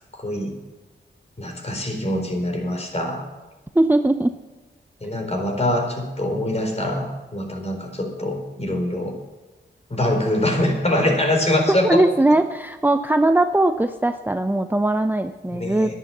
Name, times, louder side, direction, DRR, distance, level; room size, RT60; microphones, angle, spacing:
voice 1, 0.1-0.5 1.4-3.2 5.0-9.2 9.9-12.0 15.5-15.9, left 1 dB, 35° left, 3 dB, 4.2 m, -24 dB
voice 2, 3.7-4.3 11.8-15.9, right 1 dB, 10° right, 8 dB, 0.7 m, -19 dB
11.0 x 10.5 x 7.2 m, 1.2 s
cardioid pair, 55°, 20 cm